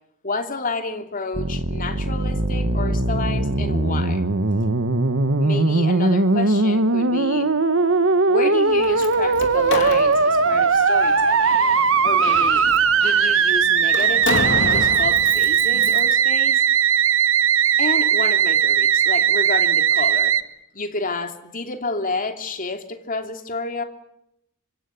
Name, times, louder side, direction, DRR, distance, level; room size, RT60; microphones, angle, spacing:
voice 1, 0.2-4.2 5.4-7.5 8.3-11.6 12.0-12.7 13.0-16.6 17.8-20.3 20.7-23.8, left 3 dB, 40° left, 6 dB, 3.0 m, -30 dB
Musical instrument, 1.3-20.4, right 5 dB, 65° right, 1.5 m, -19 dB
Slam, 8.7-16.1, left 2 dB, 55° left, 3.6 m, -30 dB
26.0 x 24.5 x 9.4 m, 0.82 s
head